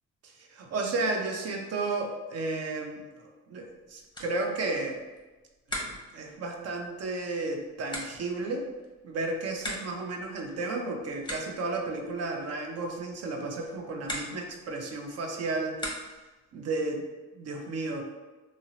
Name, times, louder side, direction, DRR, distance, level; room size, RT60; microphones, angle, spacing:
voice 1, 0.5-5.0 5.7-8.6 9.0-15.8 16.5-17.0 17.4-18.0, right 3 dB, 55° right, 2 dB, 0.5 m, -33 dB
sound 1, 3.6-16.4, left 1 dB, 15° left, 0.7 m, -43 dB
2.7 x 2.0 x 2.7 m, 1.2 s
cardioid pair, 90°, 30 cm